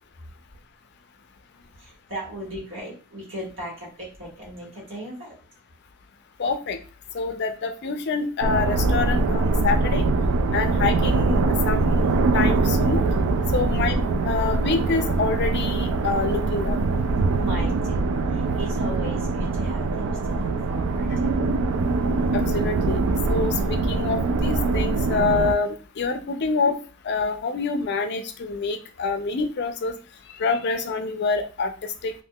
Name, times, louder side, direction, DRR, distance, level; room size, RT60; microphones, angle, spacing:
voice 1, 1.5-5.3 17.4-21.3, equal, 60° right, -5 dB, 1.6 m, -37 dB
voice 2, 6.4-6.8 7.1-10.1 10.5-13.0 13.5-16.8 22.3-23.0 23.3-26.8 27.0-30.0 30.4-32.1, left 4 dB, 55° left, 8 dB, 0.4 m, -26 dB
sound 1, 8.4-25.5, right 3 dB, 85° right, 0.3 m, -23 dB
3.5 x 2.5 x 2.3 m, 0.35 s
head